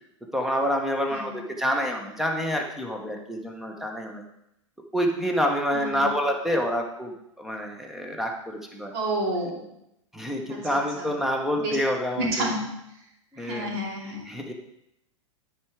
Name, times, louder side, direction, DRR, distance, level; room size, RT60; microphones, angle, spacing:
voice 1, 0.3-4.2 4.9-8.9 10.1-12.5 13.3-13.8 14.3-14.5, equal, ahead, 2 dB, 1.1 m, -27 dB
voice 2, 5.7-6.1 8.9-9.6 10.7-11.1 11.6-11.8 12.2-12.6 13.4-14.3, right 1 dB, 50° right, -3 dB, 2.9 m, -30 dB
13.0 x 4.7 x 3.5 m, 0.82 s
figure-of-eight pair, 95°, 16 cm